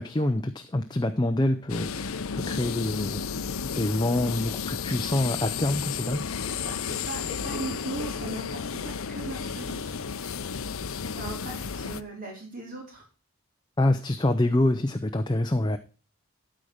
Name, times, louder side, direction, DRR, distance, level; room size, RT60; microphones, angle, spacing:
voice 1, 0.0-3.2 3.7-6.2 13.8-15.8, left 1 dB, 20° left, 7 dB, 0.6 m, -26 dB
sound 1, 1.7-12.0, left 6 dB, 75° left, 0.6 m, -33 dB
voice 2, 6.5-10.0 11.1-13.0, right 2 dB, 40° right, -1 dB, 4.2 m, -38 dB
13.0 x 5.1 x 6.5 m, 0.34 s
head